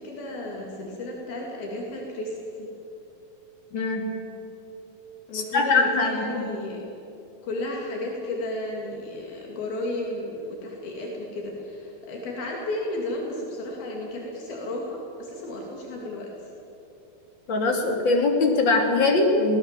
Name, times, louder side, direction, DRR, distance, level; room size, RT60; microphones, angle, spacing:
voice 1, 0.0-2.3 2.6-2.7 5.3-6.8 7.4-16.3, left 1 dB, 75° left, -2 dB, 4.5 m, -33 dB
voice 2, 3.7-4.1 5.3-6.5 17.5-19.6, left 3 dB, 35° left, 1 dB, 2.9 m, -22 dB
24.5 x 17.5 x 7.6 m, 2.8 s
omnidirectional pair, 4.3 m